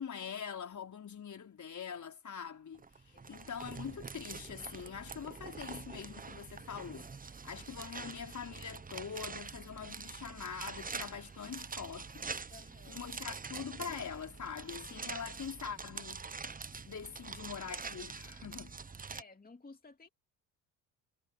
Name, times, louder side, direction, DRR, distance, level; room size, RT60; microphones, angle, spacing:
voice 1, 0.0-12.5 12.9-16.3 16.8-18.8, left 7 dB, 40° left, 4.7 m, -44 dB
sound 1, 2.7-19.2, right 4 dB, 20° right, 1.1 m, -45 dB
voice 2, 3.1-3.5 12.5-13.1 19.1-20.1, left 3 dB, 20° left, 2.6 m, -56 dB
hypercardioid pair, 55°, 43 cm